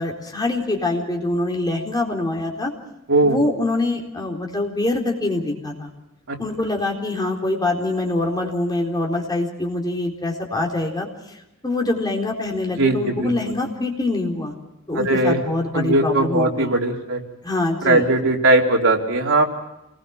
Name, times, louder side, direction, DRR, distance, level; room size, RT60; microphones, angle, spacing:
voice 1, 0.0-2.7 3.2-5.9 6.4-11.1 11.6-14.5 14.9-16.5 17.4-18.0, left 2 dB, 20° left, 0 dB, 4.1 m, -24 dB
voice 2, 12.8-13.3 15.0-15.4 15.7-17.2 17.8-19.4, right 2 dB, 80° right, 0 dB, 3.5 m, -19 dB
28.5 x 20.5 x 6.0 m, 0.91 s
head